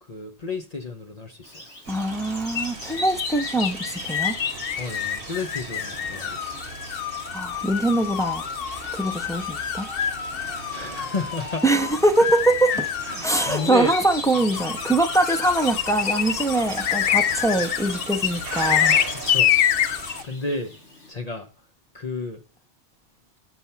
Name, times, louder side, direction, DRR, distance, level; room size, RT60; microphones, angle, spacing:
voice 1, 0.0-1.7 4.8-6.6 10.2-11.6 12.2-12.3 12.7-13.9 18.5-18.8 19.1-19.6 20.2-20.7 21.1-21.5 21.9-22.4, left 3 dB, 35° left, 0.9 m, -32 dB
Bird vocalization bird call bird song, 1.4-21.1, left 1 dB, 80° left, 3.2 m, -41 dB
voice 2, 1.9-4.3 7.3-8.4 8.9-9.9 11.6-12.9 13.2-19.0, right 2 dB, 5° left, 0.5 m, -23 dB
sound 1, 1.9-20.3, right 5 dB, 55° right, 1.1 m, -39 dB
sound 2, 2.5-20.2, left 10 dB, 65° left, 0.7 m, -27 dB
7.0 x 6.2 x 5.7 m
omnidirectional pair, 1.2 m